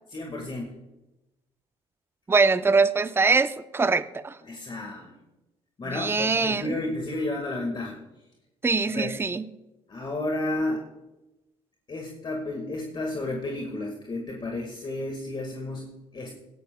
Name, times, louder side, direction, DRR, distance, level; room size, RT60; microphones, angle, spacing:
voice 1, 0.1-0.7 4.4-5.2 5.8-8.0 8.9-9.1 9.9-10.8 11.9-16.3, left 2 dB, 35° left, 0 dB, 1.7 m, -32 dB
voice 2, 2.3-4.3 5.9-6.7 8.6-9.5, right 4 dB, 15° right, 12 dB, 0.5 m, -23 dB
18.0 x 11.5 x 2.2 m, 1.0 s
supercardioid pair, 80°, 14 cm